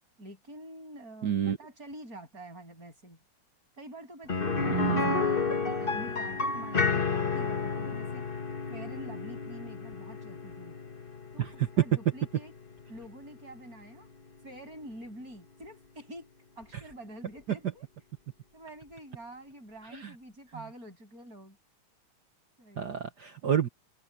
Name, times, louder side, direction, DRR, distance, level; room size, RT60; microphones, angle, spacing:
voice 1, 0.2-3.2 3.8-4.5 4.9-8.3 8.7-10.8 11.3-12.5 12.9-14.1 14.4-17.9 18.5-21.6 22.6-23.1, right 1 dB, 25° right, 8.6 m, -47 dB
voice 2, 1.2-1.6 4.7-5.2 11.4-11.7 20.0-20.1 22.8-23.7, right 9 dB, 70° right, 0.9 m, -29 dB
sound 1, 4.3-14.1 14.4-14.5 16.9-17.0, left 4 dB, 30° left, 1.1 m, -32 dB
omnidirectional pair, 3.4 m